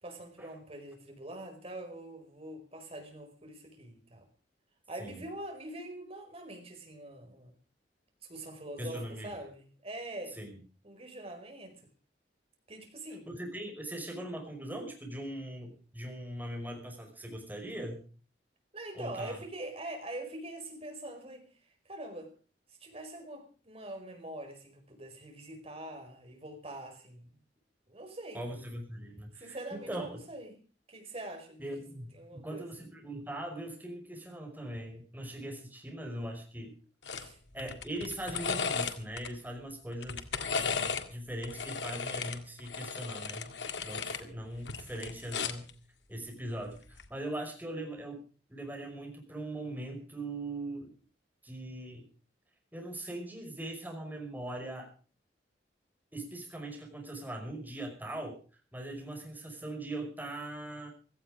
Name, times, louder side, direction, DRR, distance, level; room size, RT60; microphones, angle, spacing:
voice 1, 0.0-4.3 4.9-7.6 8.2-10.4 10.8-11.8 12.7-13.3 18.7-22.3 22.7-27.3 27.9-28.4 29.3-30.6 30.9-31.8 32.1-32.7 37.1-37.4, right 1 dB, 35° right, 4.9 m, -44 dB
voice 2, 8.8-9.3 10.3-10.6 13.3-18.0 18.9-19.4 28.3-30.2 31.6-36.8 37.5-45.7 46.1-48.2 48.5-50.9 51.4-52.1 52.7-54.9 56.1-58.4 58.7-60.9, right 1 dB, 10° right, 5.4 m, -40 dB
sound 1, 37.1-37.3 37.6-39.3 39.9-41.1 41.4-44.2 44.6-45.7 46.9-47.1, left 5 dB, 90° left, 1.9 m, -35 dB
16.5 x 15.0 x 5.0 m
head